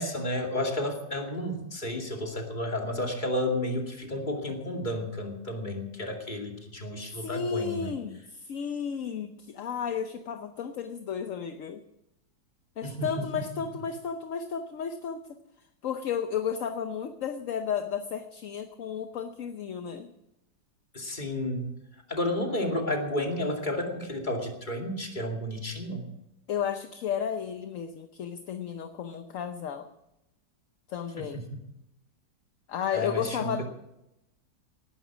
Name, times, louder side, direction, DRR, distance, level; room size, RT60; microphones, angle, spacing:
voice 1, 0.0-7.9 12.8-13.4 20.9-21.7 22.1-26.0 31.2-31.6 32.9-33.6, left 1 dB, 25° left, 2 dB, 2.5 m, -32 dB
voice 2, 7.1-11.8 12.8-15.3 15.8-20.1 26.5-29.9 30.9-31.4 32.7-33.6, left 7 dB, 55° left, 8 dB, 1.0 m, -33 dB
18.5 x 11.5 x 6.0 m, 0.89 s
omnidirectional pair, 1.9 m